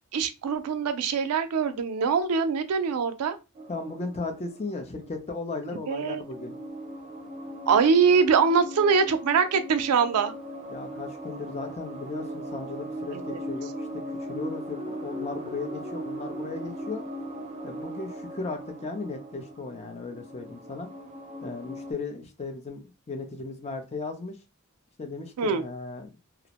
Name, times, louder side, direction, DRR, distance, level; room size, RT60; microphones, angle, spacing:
voice 1, 0.1-3.4 5.9-6.2 7.7-10.3 13.1-13.4 25.4-25.6, right 5 dB, 90° right, 0.4 m, -23 dB
sound 1, 3.5-5.5 5.9-21.9, equal, 30° right, 0.5 m, -39 dB
voice 2, 3.7-6.6 10.7-17.1 17.6-20.9 21.4-24.4 25.0-26.2, left 3 dB, 30° left, 0.5 m, -36 dB
2.4 x 2.0 x 2.8 m
head